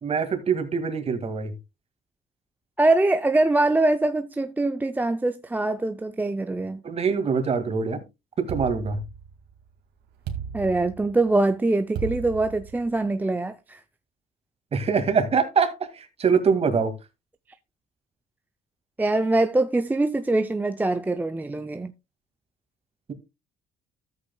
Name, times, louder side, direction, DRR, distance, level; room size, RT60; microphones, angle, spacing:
voice 1, 0.0-1.5 6.8-8.0 8.4-9.0 14.7-16.9, right 5 dB, 35° right, 2.0 m, -24 dB
voice 2, 2.8-6.8 10.5-13.8 19.0-21.9, right 2 dB, 10° right, 0.4 m, -23 dB
sound 1, 8.5-9.6 10.3-11.3 12.0-13.1, right 8 dB, 80° right, 2.0 m, -35 dB
13.5 x 8.2 x 2.2 m
cardioid pair, 110°, 17 cm